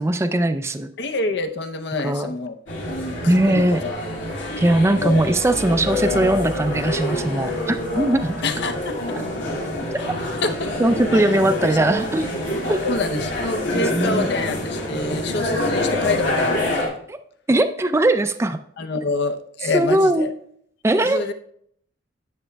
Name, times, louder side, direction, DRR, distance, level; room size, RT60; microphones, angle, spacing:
voice 1, 0.0-0.9 2.0-2.3 3.3-3.8 4.6-8.4 10.0-10.1 10.8-12.3 12.7-12.9 13.7-14.3 17.1-17.2 17.5-18.6 19.7-20.3 20.8-21.3, right 1 dB, 15° right, 9 dB, 0.3 m, -20 dB
voice 2, 1.0-2.6 2.9-4.0 4.9-5.2 8.4-9.2 10.4-10.7 11.1-11.3 11.7-11.8 12.8-17.0 18.8-20.3 21.0-21.3, left 3 dB, 60° left, 7 dB, 0.6 m, -27 dB
sound 1, 2.7-16.9, left 1 dB, 80° left, 2.2 m, -26 dB
11.0 x 7.3 x 2.2 m, 0.66 s
head